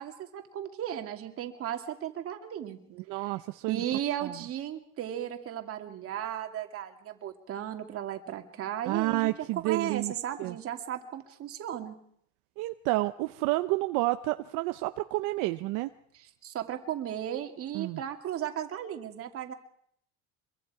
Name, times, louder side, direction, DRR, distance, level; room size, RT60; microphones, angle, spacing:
voice 1, 0.0-2.8 3.1-3.3 3.7-9.3 9.6-12.0 16.4-19.5, right 10 dB, 45° right, 5 dB, 2.4 m, -35 dB
voice 2, 3.1-3.8 4.2-4.4 8.8-10.1 10.4-10.6 12.6-15.9 17.7-18.0, right 19 dB, 70° right, 9 dB, 0.8 m, -30 dB
25.0 x 22.5 x 4.9 m, 0.66 s
cardioid pair, 140°, 32 cm